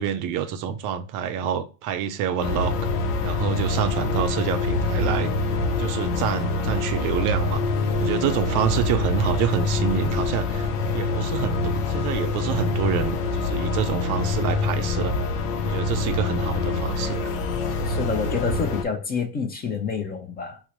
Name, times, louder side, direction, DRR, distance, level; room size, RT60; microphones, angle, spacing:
voice 1, 0.0-2.7 3.2-5.3 5.8-7.6 8.0-15.2 15.7-17.3, right 8 dB, 45° right, 0.5 m, -27 dB
sound 1, 2.4-18.9, left 3 dB, 85° left, 0.7 m, -25 dB
voice 2, 17.8-20.6, left 5 dB, 20° left, 0.5 m, -28 dB
3.7 x 2.0 x 2.9 m
supercardioid pair, 100°, 45 cm